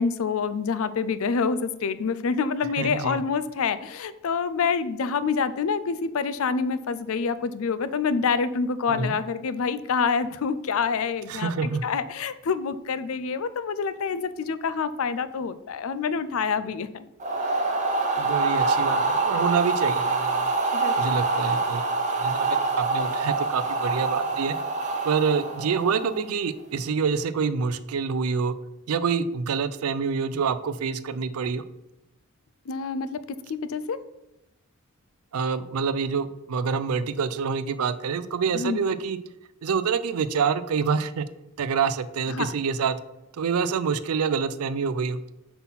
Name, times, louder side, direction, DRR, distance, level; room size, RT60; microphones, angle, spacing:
voice 1, 0.0-17.1 20.7-21.0 32.7-34.0 38.5-38.8 42.3-42.5, left 5 dB, 65° left, 14 dB, 0.4 m, -27 dB
voice 2, 2.8-3.2 8.9-9.2 11.3-11.8 18.2-20.5 21.0-21.8 22.2-24.6 25.0-28.5 28.9-31.6 35.3-39.2 39.6-41.3 41.6-43.0 43.3-45.2, right 5 dB, 75° right, 14 dB, 0.4 m, -26 dB
sound 1, 17.2-26.3, right 3 dB, 35° right, 0.8 m, -25 dB
5.6 x 4.1 x 5.6 m, 0.90 s
head